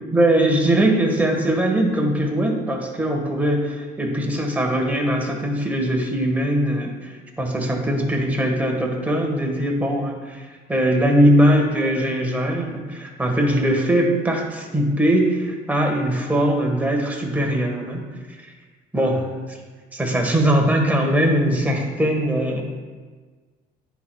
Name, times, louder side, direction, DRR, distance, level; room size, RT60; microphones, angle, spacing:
voice 1, 0.1-18.0 18.4-18.5 18.9-19.6 19.9-22.6, right 1 dB, 10° right, 0 dB, 1.4 m, -21 dB
10.0 x 4.7 x 2.3 m, 1.4 s
supercardioid pair, 80°, 19 cm